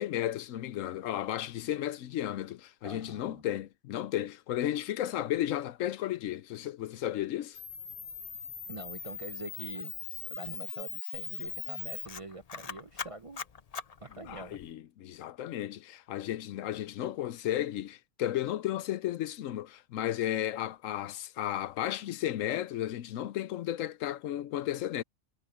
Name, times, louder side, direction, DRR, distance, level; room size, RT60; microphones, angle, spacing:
voice 1, 0.0-7.6 14.2-25.0, left 12 dB, 80° left, 1.0 m, -34 dB
voice 2, 2.8-3.4 8.7-9.9 10.3-13.4 14.0-14.6, right 3 dB, 35° right, 0.6 m, -45 dB
Camera, 7.5-14.7, left 6 dB, 40° left, 0.6 m, -40 dB
omnidirectional pair, 1.3 m